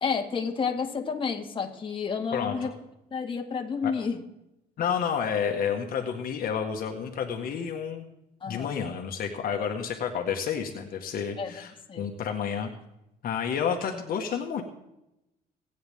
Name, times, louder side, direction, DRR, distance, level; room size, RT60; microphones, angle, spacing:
voice 1, 0.0-2.7 3.1-4.2 8.4-8.8 11.4-11.5 11.9-12.1, left 5 dB, 30° left, 1 dB, 2.1 m, -30 dB
voice 2, 2.3-2.7 3.8-3.9 4.8-8.1 8.5-12.7 13.2-14.6, left 7 dB, 60° left, 3 dB, 1.8 m, -30 dB
25.0 x 9.4 x 3.7 m, 0.86 s
cardioid pair, 110°, 17 cm